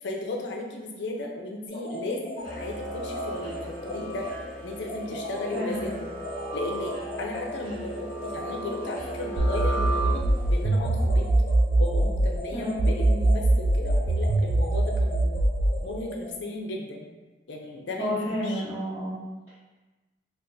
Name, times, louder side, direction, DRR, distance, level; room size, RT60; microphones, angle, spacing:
voice 1, 0.0-4.3 4.6-6.1 6.5-11.3 11.8-15.4 15.8-17.1 17.5-18.6, left 2 dB, 85° left, 1 dB, 0.5 m, -35 dB
sound 1, 1.7-16.3, equal, 40° left, 1.0 m, -39 dB
sound 2, 2.4-10.6, right 1 dB, 30° right, 1.2 m, -36 dB
voice 2, 5.5-5.8 12.5-12.8 18.0-19.5, equal, 15° right, -13 dB, 0.8 m, -31 dB
sound 3, 9.4-12.4 12.8-15.8, right 2 dB, 50° right, 0.3 m, -22 dB
2.5 x 2.4 x 3.8 m, 1.2 s
head